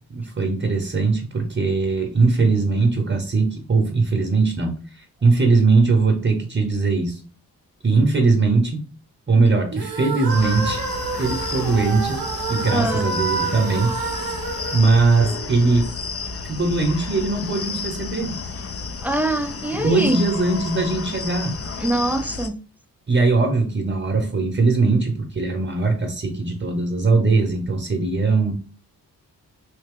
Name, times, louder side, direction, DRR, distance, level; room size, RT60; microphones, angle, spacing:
voice 1, 0.1-7.2 7.8-8.8 9.3-10.8 11.2-12.2 12.5-13.9 14.7-15.9 16.5-18.4 19.7-21.6 23.1-28.5, right 3 dB, 30° right, 0.9 m, -20 dB
sound 1, 9.7-15.9, right 5 dB, 60° right, 0.9 m, -29 dB
sound 2, 10.3-22.5, left 4 dB, 35° left, 0.6 m, -32 dB
voice 2, 12.7-13.1 19.0-20.2 21.8-22.5, right 1 dB, 5° right, 0.5 m, -23 dB
3.3 x 2.8 x 3.7 m
supercardioid pair, 45°, 40 cm